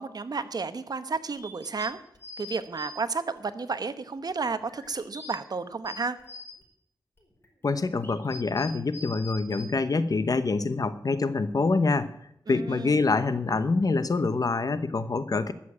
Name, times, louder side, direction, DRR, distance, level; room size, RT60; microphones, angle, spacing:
voice 1, 0.0-2.0 2.4-6.2 12.5-13.1, right 4 dB, 55° right, 11 dB, 1.0 m, -32 dB
sound 1, 1.3-2.9 3.4-3.5 4.2-5.3 5.7-6.6 7.2-9.6, left 2 dB, 30° left, 4.9 m, -44 dB
voice 2, 7.6-12.1 12.5-15.5, left 3 dB, 50° left, 12 dB, 1.0 m, -26 dB
13.0 x 7.3 x 8.7 m, 0.74 s
cardioid pair, 70°, 8 cm